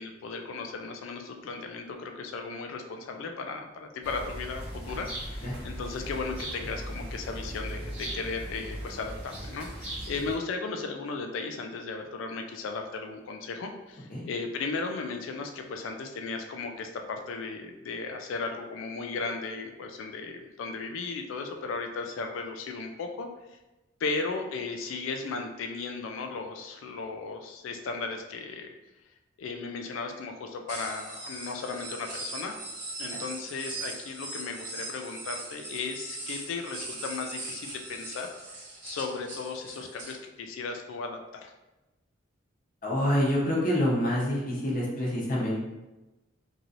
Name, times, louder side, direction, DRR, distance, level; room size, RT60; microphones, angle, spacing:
voice 1, 0.0-23.6 24.0-28.7 29.4-32.6 33.0-41.5, left 4 dB, 80° left, 4 dB, 0.3 m, -36 dB
sound 1, 4.0-10.4, right 1 dB, 10° right, 1.4 m, -38 dB
sound 2, 30.7-40.1, right 2 dB, 40° right, 1.0 m, -40 dB
voice 2, 42.8-45.6, equal, 45° left, -5 dB, 0.9 m, -26 dB
3.0 x 2.7 x 2.5 m, 1.0 s
head